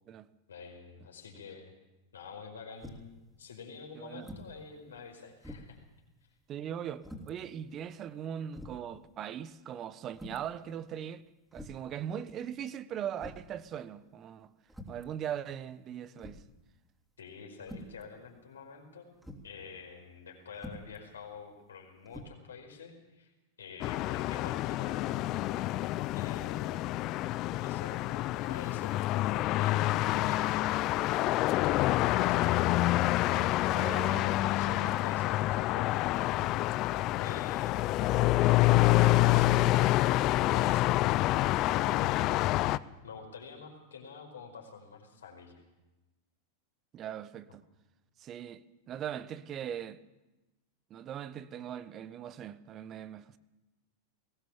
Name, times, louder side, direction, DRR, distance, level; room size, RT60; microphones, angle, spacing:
voice 1, 0.5-1.7 2.1-3.1 3.4-5.8 17.2-19.1 19.4-23.3 23.6-25.8 26.1-26.9 27.6-32.6 34.2-36.7 37.2-41.0 41.7-45.6, left 5 dB, 85° left, 4.9 m, -48 dB
sound 1, 2.8-3.2 4.2-4.6 5.0-5.1 5.4-5.8 7.0-7.3 8.1-8.2 8.5-8.8 10.1-10.5 11.5-11.9 13.2-13.5 14.7-15.1 16.2-16.6 17.6-18.0 19.2-19.5 20.5-21.0 22.1-22.3, left 1 dB, 5° right, 3.3 m, -46 dB
voice 2, 3.9-4.3 6.5-11.2 11.5-14.5 14.9-16.4 32.6-33.1 33.7-34.3 34.6-35.0 46.9-47.6 48.2-50.0 50.9-53.4, right 9 dB, 35° right, 1.1 m, -40 dB
sound 2, 23.8-42.8, left 16 dB, 45° left, 0.6 m, -27 dB
20.5 x 17.5 x 7.3 m
hypercardioid pair, 100°, 0 cm